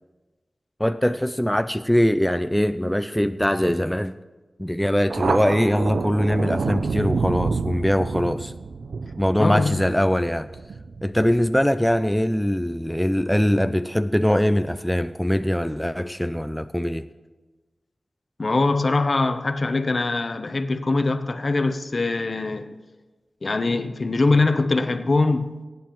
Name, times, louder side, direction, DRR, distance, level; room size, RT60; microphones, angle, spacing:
voice 1, 0.8-4.1 4.6-8.5 9.2-10.5 11.0-17.1, equal, 5° left, 0.4 m, -22 dB
Thunder, 5.1-12.2, right 4 dB, 90° right, 0.4 m, -29 dB
voice 2, 9.4-9.8 18.4-22.7 23.4-25.5, left 3 dB, 50° left, 0.7 m, -22 dB
22.5 x 9.3 x 3.0 m
wide cardioid pair, 65°, 0 cm